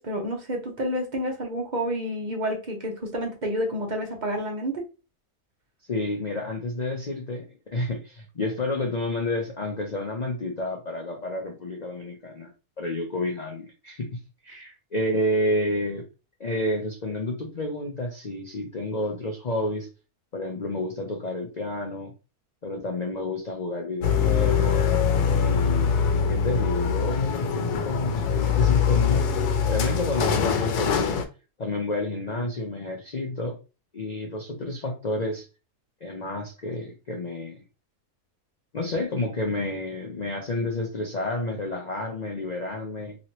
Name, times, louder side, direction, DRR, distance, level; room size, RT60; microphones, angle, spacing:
voice 1, 0.0-4.8 14.5-14.7, equal, 40° right, 1 dB, 0.8 m, -29 dB
voice 2, 5.9-7.5 7.7-12.5 12.8-14.1 14.4-16.0 16.4-19.9 20.3-22.1 22.6-24.8 25.4-29.3 29.7-31.2 31.6-33.6 33.9-35.4 36.0-37.6 38.7-43.2, left 2 dB, 60° left, 1 dB, 0.4 m, -30 dB
sound 1, 24.0-31.2, left 6 dB, 85° left, 1.1 m, -23 dB
3.0 x 3.0 x 2.9 m, 0.31 s
omnidirectional pair, 1.6 m